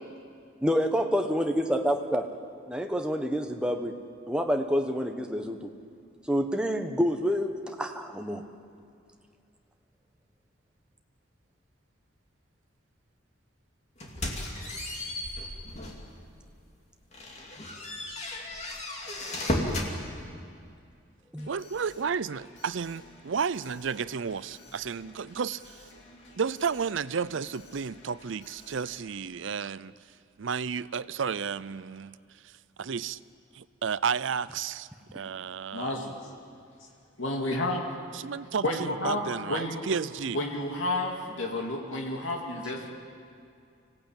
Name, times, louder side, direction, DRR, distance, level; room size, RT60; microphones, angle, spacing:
voice 1, 0.6-2.3 2.7-3.9 4.3-5.7 6.3-8.4 21.3-21.5, equal, 5° right, 4 dB, 1.1 m, -28 dB
sound 1, 14.0-16.1 16.5-16.7 17.1-19.9, left 1 dB, 35° left, 2.6 m, -34 dB
Alarm, 21.4-29.2, left 1 dB, 65° left, 3.0 m, -53 dB
voice 2, 21.5-25.8 26.4-29.9 30.4-32.2 32.8-33.2 33.5-36.0 38.1-40.4, right 6 dB, 70° right, 18 dB, 0.5 m, -32 dB
voice 3, 35.7-36.2 37.2-37.8 38.6-39.8 40.3-42.9, left 1 dB, 80° left, 0 dB, 2.3 m, -31 dB
25.0 x 17.0 x 8.9 m, 2.4 s
head